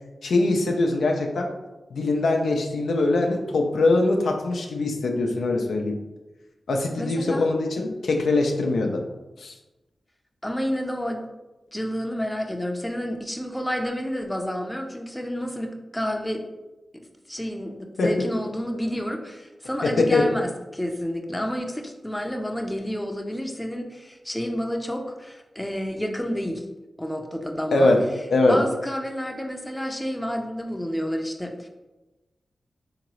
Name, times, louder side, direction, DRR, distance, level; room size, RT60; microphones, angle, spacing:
voice 1, 0.2-1.5 1.9-6.0 6.7-9.0 9.4-9.5 18.0-18.1 19.8-20.2 27.7-28.0 28.3-28.6, left 2 dB, 85° left, 2 dB, 0.4 m, -22 dB
voice 2, 7.0-7.5 7.8-7.9 10.4-11.2 11.7-16.4 17.3-26.6 27.0-27.9 28.5-31.7, equal, 10° left, 3 dB, 0.5 m, -30 dB
3.7 x 2.9 x 3.0 m, 1.1 s
cardioid pair, 45°, 0 cm